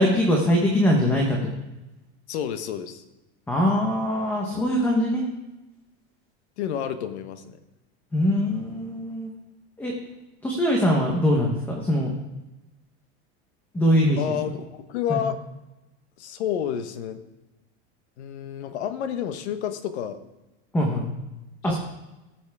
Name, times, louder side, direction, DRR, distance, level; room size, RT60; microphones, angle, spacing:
voice 1, 0.0-1.5 3.5-5.2 8.1-9.3 9.8-9.9 10.4-12.1 13.7-14.3 15.1-15.2 20.7-21.1 21.6-21.7, equal, 5° left, -1 dB, 1.0 m, -22 dB
voice 2, 2.3-3.0 6.6-7.6 14.2-15.4 16.2-17.2 18.2-20.2 21.7-21.8, left 9 dB, 80° left, 10 dB, 1.2 m, -30 dB
19.0 x 7.3 x 3.5 m, 1.0 s
supercardioid pair, 170°, 33 cm